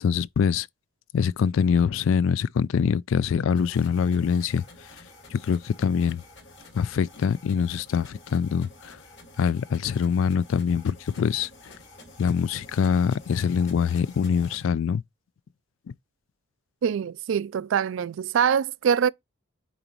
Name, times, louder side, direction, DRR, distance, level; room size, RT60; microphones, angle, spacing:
voice 1, 0.0-0.7 1.1-4.6 5.3-6.2 6.7-9.0 9.4-11.5 12.2-15.0, left 7 dB, 70° left, 0.3 m, -24 dB
sound 1, 3.5-14.6, left 2 dB, 55° left, 2.3 m, -49 dB
voice 2, 16.8-19.1, right 7 dB, 65° right, 0.3 m, -24 dB
8.8 x 4.0 x 3.0 m
head